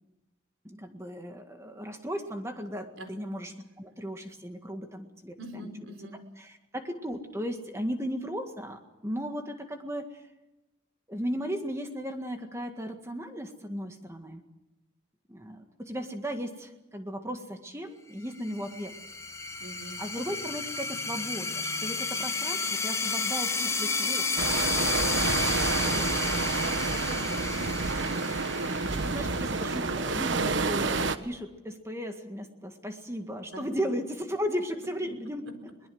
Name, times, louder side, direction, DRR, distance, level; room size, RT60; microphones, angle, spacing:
voice 1, 0.6-5.7 6.4-10.2 11.1-14.4 15.3-18.9 20.0-24.3 25.6-26.1 28.9-35.4, equal, 15° right, 5 dB, 1.8 m, -36 dB
voice 2, 3.0-3.3 5.4-6.2 19.6-20.0 25.6-25.7 26.2-28.2 33.5-33.8, right 1 dB, 90° right, 6 dB, 4.1 m, -44 dB
sound 1, 18.5-29.7, left 4 dB, 15° left, 1.0 m, -32 dB
sound 2, 24.4-31.2, right 3 dB, 70° right, 1.2 m, -29 dB
23.0 x 21.0 x 7.8 m, 0.98 s
head